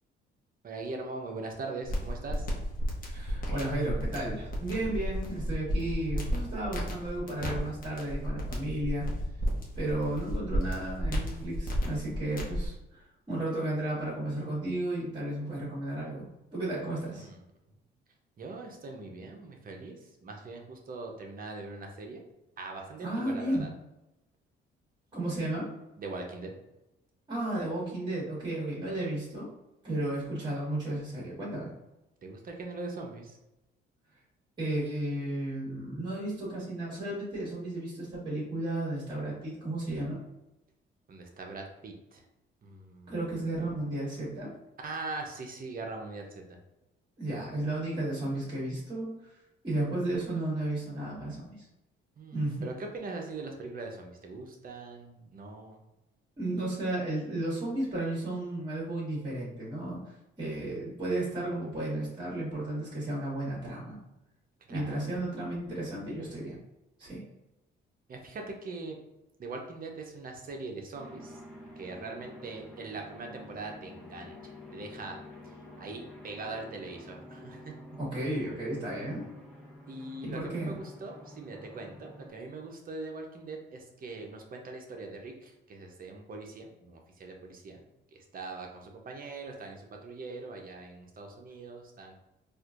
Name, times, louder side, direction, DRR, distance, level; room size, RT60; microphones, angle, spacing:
voice 1, 0.6-2.5 16.8-17.4 18.4-22.2 22.6-23.7 26.0-26.5 32.2-33.4 41.1-42.2 42.6-43.3 44.8-46.6 52.2-55.8 64.7-64.9 68.1-69.0 69.4-71.4 71.8-75.2 75.4-77.7 79.9-87.8 88.1-92.2, right 3 dB, 45° right, 2 dB, 0.8 m, -41 dB
sound 1, 1.8-12.7, equal, 45° left, 1.0 m, -33 dB
voice 2, 3.0-9.0 9.8-16.3 16.5-17.3 23.0-23.6 25.1-25.7 27.3-29.5 29.8-31.7 34.6-40.2 43.1-44.5 47.2-49.1 49.6-51.7 52.3-52.7 56.4-64.0 64.7-66.6 67.0-67.2 78.0-79.2 80.2-80.8, right 1 dB, 25° right, -6 dB, 1.5 m, -33 dB
sound 2, 70.9-82.3, left 1 dB, 5° left, 1.2 m, -49 dB
4.2 x 2.5 x 2.5 m, 0.95 s
cardioid pair, 90°, 20 cm